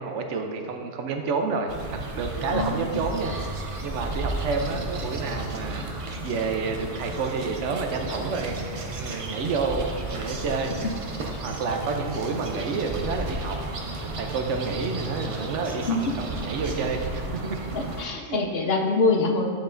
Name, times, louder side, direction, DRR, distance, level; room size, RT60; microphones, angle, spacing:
voice 1, 0.0-1.7 2.1-3.3 3.8-8.6 8.9-10.8 11.3-13.6 14.0-17.6 18.1-18.7, right 4 dB, 75° right, 4 dB, 1.0 m, -29 dB
sound 1, 1.7-18.1, right 2 dB, 40° right, 0.5 m, -33 dB
voice 2, 2.5-3.0 10.8-10.9 11.3-11.4 15.9-16.1 17.7-19.5, left 3 dB, 60° left, 2 dB, 0.8 m, -25 dB
7.6 x 7.0 x 2.6 m, 2.2 s
omnidirectional pair, 1.3 m